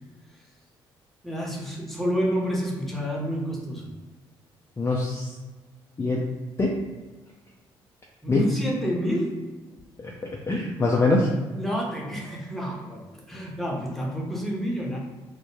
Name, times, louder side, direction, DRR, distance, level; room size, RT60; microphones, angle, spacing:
voice 1, 1.2-3.9 8.2-9.4 11.5-15.0, equal, ahead, -2 dB, 0.8 m, -29 dB
voice 2, 4.8-5.4 6.0-6.3 6.6-6.8 8.3-8.5 10.0-10.1 10.5-11.3, left 2 dB, 20° left, -2 dB, 0.4 m, -23 dB
2.1 x 2.1 x 3.1 m, 1.2 s
hypercardioid pair, 50°, 12 cm